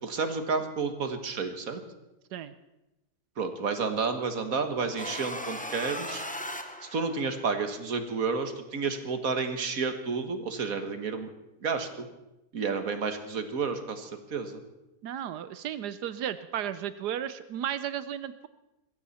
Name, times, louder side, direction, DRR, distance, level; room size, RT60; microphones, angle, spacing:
voice 1, 0.0-1.8 3.4-6.2 6.9-11.3 11.6-12.1 12.5-14.6, right 4 dB, 60° right, 7 dB, 1.9 m, -31 dB
sound 1, 5.0-7.5, left 1 dB, 5° left, 0.9 m, -38 dB
voice 2, 15.0-18.5, right 10 dB, 80° right, 13 dB, 1.3 m, -34 dB
21.0 x 15.5 x 4.3 m, 0.95 s
omnidirectional pair, 1.7 m